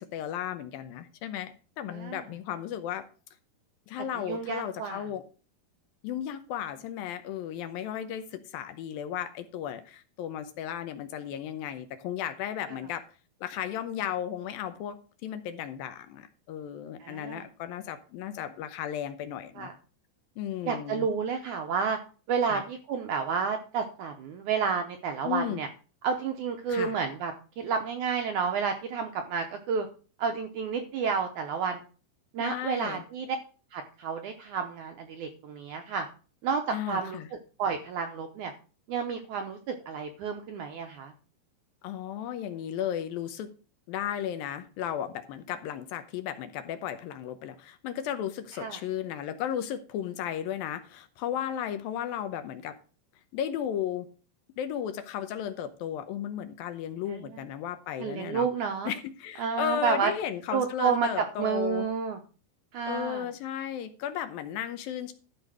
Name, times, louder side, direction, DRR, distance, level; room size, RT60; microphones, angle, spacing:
voice 1, 0.0-3.0 3.9-5.2 6.0-13.0 13.4-15.0 15.2-19.7 20.4-21.1 22.4-22.6 25.2-25.6 26.7-27.0 32.4-33.0 36.7-37.3 41.8-43.5 43.9-52.8 53.3-54.1 54.6-58.5 58.9-61.9 62.9-65.1, left 10 dB, 75° left, 9 dB, 2.4 m, -34 dB
voice 2, 1.9-2.2 4.3-5.0 17.0-17.4 19.6-19.7 20.7-22.0 22.3-25.7 26.0-29.9 30.2-31.8 32.3-33.4 33.7-36.1 36.4-37.2 37.6-38.5 38.9-41.1 48.6-48.8 57.1-57.4 58.0-58.9 59.4-60.1 60.5-62.2 62.7-63.3, right 6 dB, 75° right, 6 dB, 1.8 m, -30 dB
12.5 x 5.1 x 6.2 m, 0.37 s
omnidirectional pair, 4.5 m